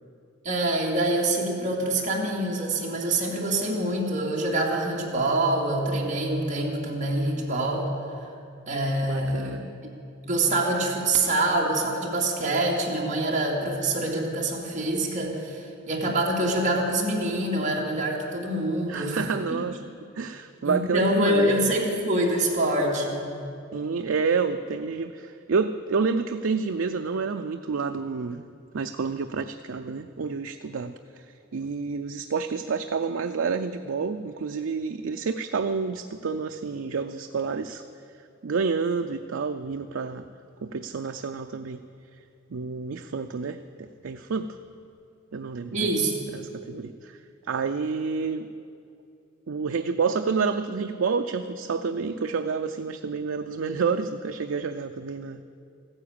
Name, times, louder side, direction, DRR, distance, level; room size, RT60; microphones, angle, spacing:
voice 1, 0.4-7.9 8.7-9.7 10.2-19.2 19.5-19.6 20.6-23.3 45.7-46.3, right 1 dB, 40° right, -2 dB, 2.5 m, -25 dB
voice 2, 9.0-9.6 18.9-19.8 20.2-21.5 23.7-28.5 28.7-31.3 31.5-37.8 38.4-40.3 40.6-41.8 42.5-44.6 45.3-45.9 46.3-47.2 47.5-48.5 49.5-55.4, right 5 dB, 85° right, 7 dB, 0.5 m, -29 dB
15.0 x 9.8 x 8.7 m, 2.6 s
head